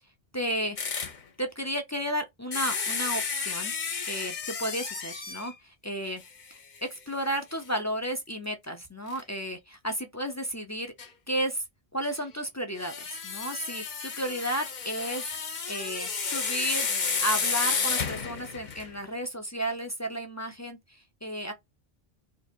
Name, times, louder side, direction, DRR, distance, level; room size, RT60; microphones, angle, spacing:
voice 1, 0.3-0.8 1.4-3.7 4.1-6.2 6.5-10.9 11.3-11.6 11.9-15.3 15.7-21.5, right 1 dB, 20° left, 0.4 m, -33 dB
sound 1, 0.8-1.2 2.5-5.5 6.2-6.3 6.8-6.9 9.1-9.2 11.0-11.1 12.8-19.0, left 5 dB, 50° left, 0.8 m, -31 dB
2.9 x 2.4 x 4.3 m
omnidirectional pair, 1.1 m